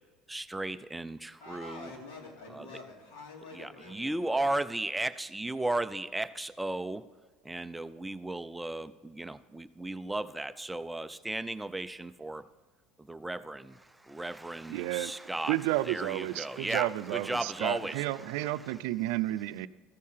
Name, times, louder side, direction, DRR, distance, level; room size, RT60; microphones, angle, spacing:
voice 1, 0.3-1.9 2.5-2.6 3.6-7.0 7.5-12.4 13.1-13.8 14.1-15.6 15.9-18.0, right 2 dB, 5° right, 12 dB, 0.3 m, -35 dB
voice 2, 1.4-4.4, left 2 dB, 85° left, 0 dB, 3.0 m, -47 dB
voice 3, 14.7-15.1 15.5-19.7, right 16 dB, 85° right, 14 dB, 0.4 m, -31 dB
14.0 x 6.6 x 5.7 m, 1.4 s
cardioid pair, 145°, 0 cm